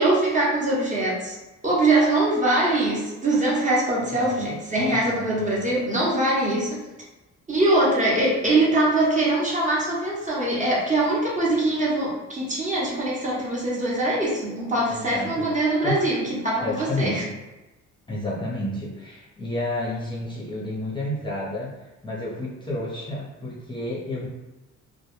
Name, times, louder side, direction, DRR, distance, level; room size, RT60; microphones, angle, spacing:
voice 1, 0.0-1.4 1.6-6.8 7.5-17.2, right 2 dB, 25° right, -5 dB, 0.8 m, -22 dB
voice 2, 4.1-4.5 4.8-5.8 14.9-15.5 15.8-16.0 16.6-17.3 18.1-24.3, left 1 dB, 15° left, -6 dB, 0.6 m, -31 dB
2.1 x 2.0 x 3.0 m, 1.1 s
cardioid pair, 90°, 30 cm